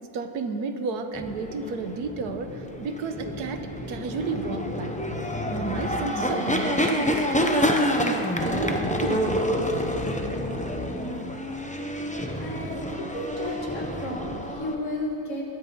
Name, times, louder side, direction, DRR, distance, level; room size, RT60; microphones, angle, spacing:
voice 1, 0.1-5.0 5.5-9.4, right 4 dB, 80° right, 7 dB, 1.4 m, -32 dB
sound 1, 1.1-14.8, equal, 10° left, 0.4 m, -28 dB
voice 2, 12.3-15.4, left 1 dB, 50° left, -2 dB, 2.6 m, -33 dB
21.0 x 10.0 x 5.4 m, 2.8 s
omnidirectional pair, 1.7 m